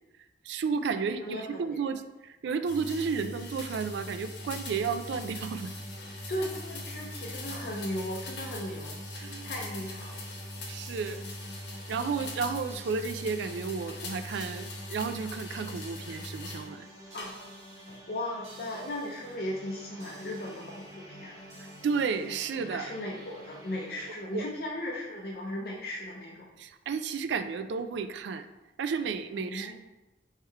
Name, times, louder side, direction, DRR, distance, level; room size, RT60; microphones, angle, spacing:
voice 1, 0.4-5.7 9.2-9.5 10.7-11.2 11.9-16.9 21.6-22.9 24.3-24.5 26.6-28.5 28.8-29.7, right 5 dB, 75° right, 10 dB, 0.3 m, -32 dB
voice 2, 1.2-1.8 6.3-8.9 9.4-10.2 17.1-17.4 17.9-21.4 22.7-26.5 29.3-29.7, left 1 dB, 55° left, -2 dB, 0.5 m, -37 dB
sound 1, 2.6-16.7 17.2-17.7, left 1 dB, 70° left, 0.9 m, -41 dB
sound 2, 4.4-24.2, equal, 20° right, 0.7 m, -50 dB
sound 3, 10.8-12.2 12.7-13.9 14.3-15.3 15.7-16.6 17.1-18.0 18.4-19.4 20.0-20.9 21.5-22.3, right 2 dB, 35° right, 1.0 m, -56 dB
3.6 x 3.2 x 4.5 m, 1.1 s
head